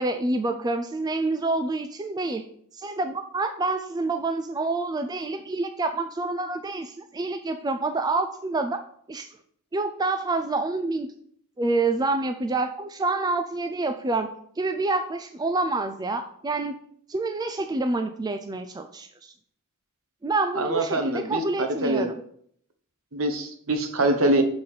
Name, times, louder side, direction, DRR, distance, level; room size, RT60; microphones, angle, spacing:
voice 1, 0.0-2.4 2.7-8.8 9.1-9.3 9.7-11.1 11.6-16.8 17.1-19.3 20.2-22.1, right 3 dB, 20° right, 7 dB, 0.3 m, -27 dB
voice 2, 20.5-22.1 23.1-24.4, right 1 dB, 65° right, 6 dB, 1.1 m, -24 dB
6.7 x 3.9 x 5.7 m, 0.64 s
head